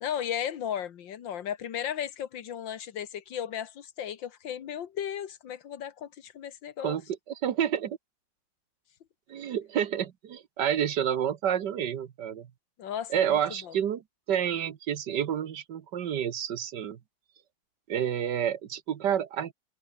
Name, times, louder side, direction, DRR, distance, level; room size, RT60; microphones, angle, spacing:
voice 1, 0.0-7.0 12.8-13.7, left 9 dB, 90° left, 2.0 m, -35 dB
voice 2, 7.3-8.0 9.3-12.5 13.1-14.0 14.3-17.0 17.9-19.5, right 9 dB, 70° right, 1.7 m, -29 dB
omnidirectional pair, 2.0 m